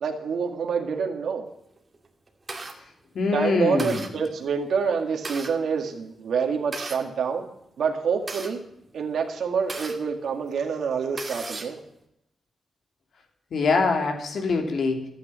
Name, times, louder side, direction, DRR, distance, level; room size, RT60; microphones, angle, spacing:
voice 1, 0.0-1.5 3.3-7.5 7.8-8.6 8.9-11.8, right 6 dB, 75° right, 3 dB, 1.9 m, -27 dB
sound 1, 1.8-2.7 3.3-3.4 3.8-4.1 4.9-5.5 6.4-7.0 7.8-10.0 10.5-10.6 10.9-11.8, right 3 dB, 30° right, 2.1 m, -36 dB
voice 2, 3.1-4.0 13.5-15.1, left 4 dB, 65° left, 3 dB, 3.1 m, -24 dB
13.5 x 9.1 x 7.6 m, 0.80 s
wide cardioid pair, 115°, 0 cm